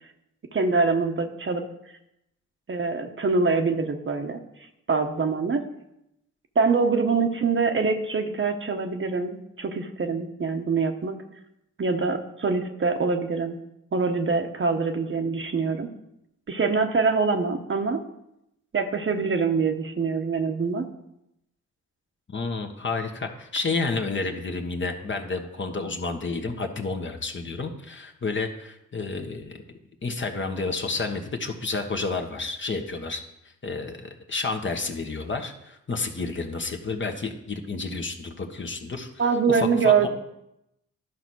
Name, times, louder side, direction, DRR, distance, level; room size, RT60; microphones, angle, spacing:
voice 1, 0.5-1.6 2.7-4.4 4.9-5.6 6.5-11.2 11.8-13.6 13.9-15.9 16.5-18.0 18.7-20.9 39.2-40.1, right 4 dB, 40° right, 5 dB, 1.0 m, -24 dB
voice 2, 22.3-29.6 30.0-33.2 33.6-39.2 39.5-40.1, left 3 dB, 40° left, 4 dB, 1.3 m, -30 dB
11.5 x 4.1 x 6.2 m, 0.84 s
supercardioid pair, 60°, 31 cm